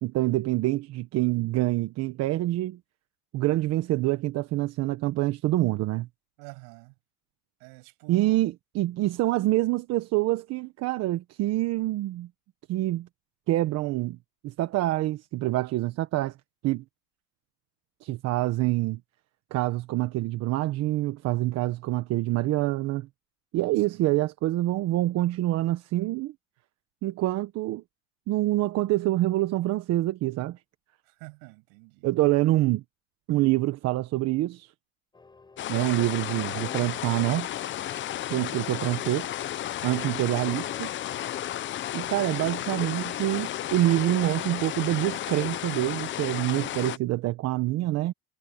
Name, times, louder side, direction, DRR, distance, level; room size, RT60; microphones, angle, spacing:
voice 1, 0.0-2.8 3.3-6.1 8.1-12.3 12.7-13.1 13.5-14.2 14.4-16.3 16.6-16.8 18.0-19.0 19.5-23.1 23.5-26.3 27.0-27.8 28.3-30.6 32.0-32.8 33.3-34.7 35.7-37.5 38.3-39.3 39.8-40.9 41.9-48.1, right 16 dB, 55° right, 1.3 m, -26 dB
voice 2, 6.4-6.9 7.6-8.4 23.8-24.2 31.0-32.1, right 36 dB, 80° right, 7.2 m, -48 dB
sound 1, 35.1-42.0, left 3 dB, 15° left, 4.2 m, -53 dB
sound 2, 35.6-47.0, left 12 dB, 40° left, 0.8 m, -33 dB
supercardioid pair, 125°, 31 cm